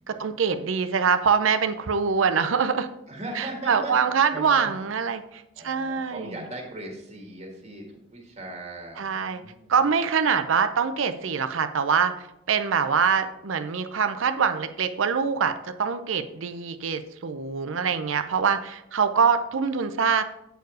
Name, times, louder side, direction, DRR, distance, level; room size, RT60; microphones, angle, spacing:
voice 1, 0.1-2.9 3.4-6.3 9.0-9.4 9.7-12.1 12.5-15.5 15.8-20.2, right 6 dB, 80° right, 10 dB, 0.5 m, -24 dB
voice 2, 3.1-3.9 4.3-4.7 5.5-9.8, right 1 dB, 35° right, 1 dB, 1.6 m, -38 dB
7.9 x 4.6 x 4.8 m, 0.85 s
head